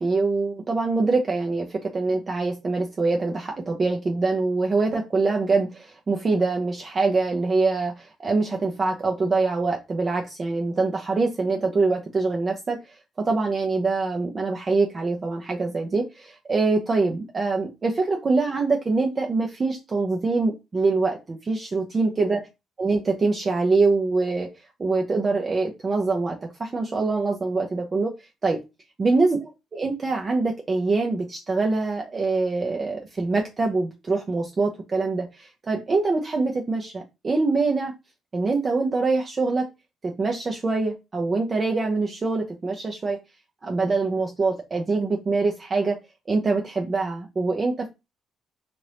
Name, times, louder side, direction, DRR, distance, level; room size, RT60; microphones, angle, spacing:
voice 1, 0.0-22.4 22.8-24.5 24.8-28.1 28.4-28.6 29.0-37.9 38.3-39.7 40.0-43.2 43.6-46.0 46.3-47.9, right 3 dB, 35° right, 0 dB, 0.6 m, -24 dB
2.8 x 2.5 x 3.2 m, 0.25 s
cardioid pair, 90°, 0 cm